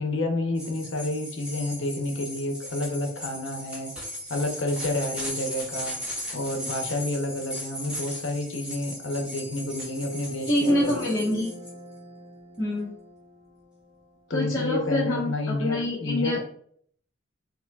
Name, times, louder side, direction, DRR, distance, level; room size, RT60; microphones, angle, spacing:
voice 1, 0.0-3.9 4.3-6.0 6.3-11.0 14.3-16.4, left 2 dB, 70° left, 4 dB, 0.8 m, -29 dB
sound 1, 0.5-11.7, left 1 dB, 5° right, 1.4 m, -37 dB
sound 2, 9.9-14.4, left 2 dB, 45° right, 1.2 m, -41 dB
voice 2, 10.5-11.5 12.6-12.9 14.3-16.4, left 1 dB, 20° left, -10 dB, 1.2 m, -26 dB
6.3 x 2.9 x 2.3 m, 0.62 s
head